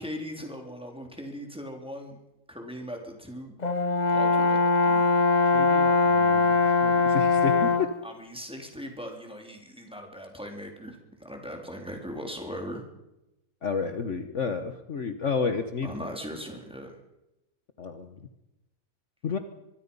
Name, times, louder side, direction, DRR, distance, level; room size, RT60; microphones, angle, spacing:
voice 1, 0.0-2.2 2.5-3.5 4.1-5.0 8.0-12.8 15.8-17.0, equal, 5° right, 2 dB, 3.5 m, -39 dB
Brass instrument, 3.6-8.0, left 4 dB, 30° left, 1.0 m, -22 dB
voice 2, 5.4-7.9 13.6-16.1 17.8-18.3 19.2-19.4, left 5 dB, 55° left, 8 dB, 1.5 m, -31 dB
23.5 x 23.0 x 5.5 m, 0.94 s
omnidirectional pair, 1.6 m